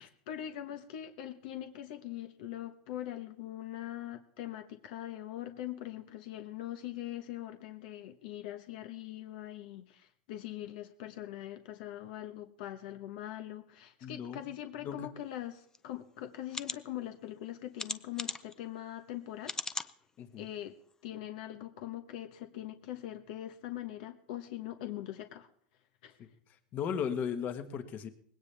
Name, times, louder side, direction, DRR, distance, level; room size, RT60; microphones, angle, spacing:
voice 1, 0.0-19.5 20.4-20.8 21.0-25.5 26.0-26.2, left 12 dB, 65° left, 7 dB, 1.1 m, -42 dB
voice 2, 14.0-14.4 14.8-15.1 20.2-20.5 26.2-26.3 26.7-28.1, left 7 dB, 35° left, 9 dB, 1.4 m, -36 dB
sound 1, 15.7-15.8 16.5-16.8 17.8-18.5 19.4-19.9 20.5-20.6 20.9-21.0, left 4 dB, 10° left, 0.6 m, -37 dB
20.0 x 17.0 x 3.4 m, 0.66 s
supercardioid pair, 140°, 5 cm